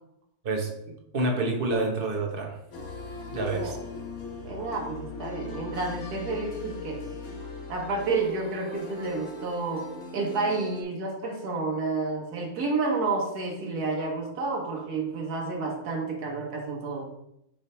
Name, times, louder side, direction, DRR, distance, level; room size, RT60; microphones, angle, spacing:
voice 1, 1.1-2.6 3.3-3.8, right 2 dB, 40° right, 1 dB, 1.3 m, -27 dB
sound 1, 2.7-10.8, left 3 dB, 70° left, 1.6 m, -39 dB
voice 2, 4.4-7.0 7.7-9.9 10.1-17.0, right 3 dB, 85° right, -1 dB, 1.8 m, -30 dB
8.8 x 3.5 x 4.4 m, 0.82 s
omnidirectional pair, 1.6 m